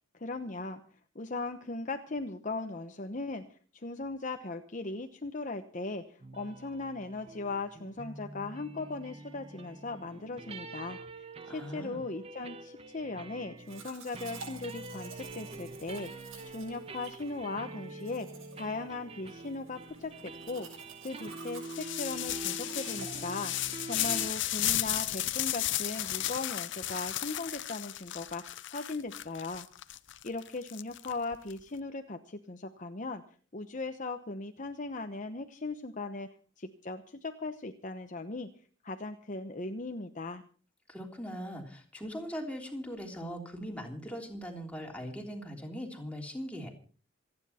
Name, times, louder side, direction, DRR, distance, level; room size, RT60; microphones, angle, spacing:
voice 1, 0.1-0.8 1.1-3.5 3.7-11.0 11.5-18.3 18.5-20.7 21.0-23.5 23.8-29.7 30.2-33.2 33.5-38.5 38.8-40.4, left 3 dB, 40° left, 6 dB, 1.0 m, -38 dB
sound 1, 6.2-24.3, right 3 dB, 30° right, 1.2 m, -45 dB
voice 2, 11.5-12.0 40.9-46.7, equal, 5° left, 1 dB, 3.3 m, -40 dB
Domestic sounds home sounds, 13.6-27.0, right 4 dB, 90° right, 7.0 m, -52 dB
sound 2, 21.6-31.5, left 14 dB, 60° left, 0.8 m, -34 dB
27.0 x 9.9 x 4.3 m, 0.41 s
head